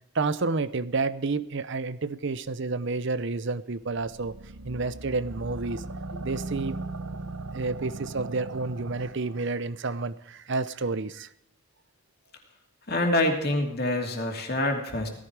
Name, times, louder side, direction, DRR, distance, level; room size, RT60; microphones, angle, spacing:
voice 1, 0.1-4.4 4.6-5.8 6.2-6.8 7.5-11.3, right 3 dB, 55° right, 15 dB, 0.6 m, -30 dB
sound 1, 3.9-9.5, right 2 dB, 85° right, 1.0 m, -38 dB
voice 2, 12.9-15.1, left 1 dB, 45° left, 2 dB, 2.8 m, -26 dB
17.5 x 14.0 x 4.8 m, 0.77 s
head